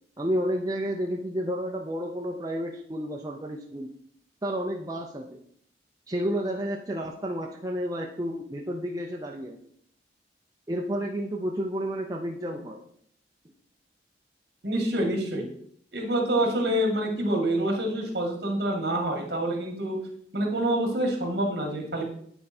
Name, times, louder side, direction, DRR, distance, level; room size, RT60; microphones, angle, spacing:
voice 1, 0.2-3.9 4.4-5.4 6.1-9.6 10.7-12.8, equal, 20° right, 0 dB, 0.6 m, -31 dB
voice 2, 14.6-15.4 15.9-20.0 20.3-22.0, right 1 dB, 65° right, 1 dB, 2.0 m, -26 dB
9.0 x 4.7 x 4.3 m, 0.65 s
head